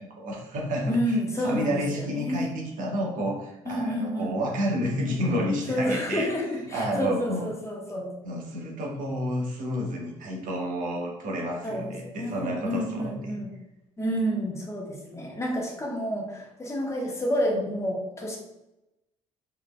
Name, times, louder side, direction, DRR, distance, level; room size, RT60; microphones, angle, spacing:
voice 1, 0.0-6.3 6.7-7.5 8.2-13.4, equal, 50° right, -1 dB, 1.2 m, -30 dB
voice 2, 0.9-2.5 3.6-4.4 5.7-8.1 11.6-13.5 14.0-18.4, equal, 15° left, -1 dB, 1.1 m, -29 dB
4.9 x 3.1 x 2.3 m, 0.92 s
figure-of-eight pair, 50°, 17 cm